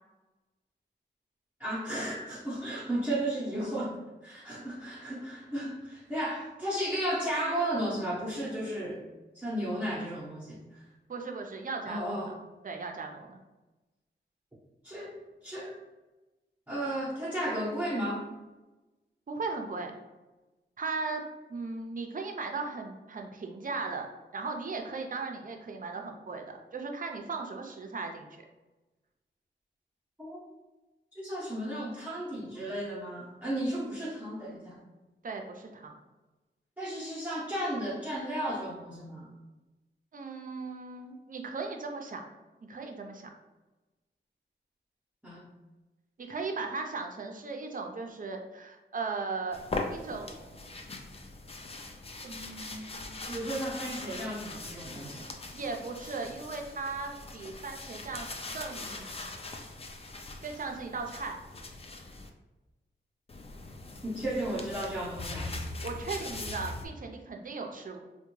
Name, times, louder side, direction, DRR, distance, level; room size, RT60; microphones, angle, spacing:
voice 1, 1.6-9.0 9.3-10.8 11.9-12.3 14.8-15.1 15.4-15.7 16.7-18.3 30.2-30.4 31.1-34.8 36.8-39.3 45.2-45.4 53.3-55.3 64.0-65.5, right 1 dB, 10° right, -9 dB, 0.7 m, -34 dB
voice 2, 11.1-12.4 12.6-13.4 19.3-19.9 20.8-21.2 21.5-24.1 24.3-28.3 35.2-35.9 40.1-42.2 42.6-43.3 46.2-49.6 49.9-50.8 52.2-53.0 55.0-55.2 55.5-58.3 58.5-59.4 60.4-61.4 65.6-68.0, right 4 dB, 45° right, 3 dB, 0.4 m, -37 dB
sound 1, 49.5-62.3 63.3-66.9, left 2 dB, 30° left, 0.4 m, -41 dB
3.4 x 2.1 x 3.0 m, 1.1 s
wide cardioid pair, 95°, 20 cm